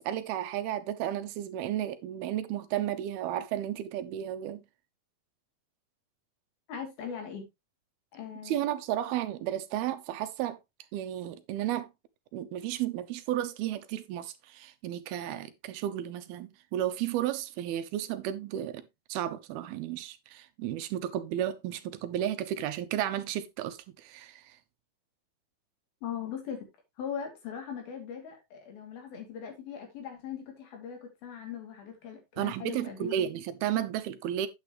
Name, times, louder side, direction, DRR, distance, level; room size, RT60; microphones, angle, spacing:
voice 1, 0.0-4.6 8.5-10.6 10.9-11.9 12.3-18.8 19.1-24.6 32.4-34.5, right 11 dB, 90° right, 2.9 m, -33 dB
voice 2, 6.7-7.5 8.1-8.7 26.0-26.7 27.0-33.1, left 8 dB, 75° left, 4.6 m, -40 dB
9.1 x 8.7 x 3.0 m
omnidirectional pair, 4.3 m